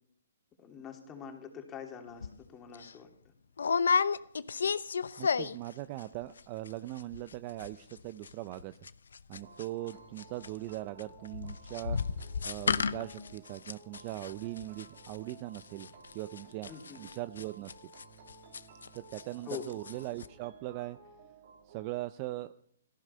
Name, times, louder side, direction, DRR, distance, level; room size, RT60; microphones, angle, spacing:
voice 1, 0.6-3.3 16.7-17.0 19.5-19.7, left 7 dB, 20° left, 3 dB, 3.0 m, -45 dB
sound 1, 2.2-2.4 2.7-2.9 3.6-5.7 6.0-6.4 6.7-6.8 7.0-7.3 7.6-19.2 19.5-19.9 20.2-20.3, left 5 dB, 80° left, 0.8 m, -33 dB
voice 2, 5.2-8.7 9.3-12.0 12.4-15.9 16.1-17.7 18.9-21.0 21.7-22.5, right 16 dB, 35° right, 13 dB, 0.6 m, -40 dB
sound 2, 9.3-21.9, right 4 dB, 50° right, 2.2 m, -55 dB
17.5 x 14.5 x 5.6 m, 0.65 s
hypercardioid pair, 150°, 0 cm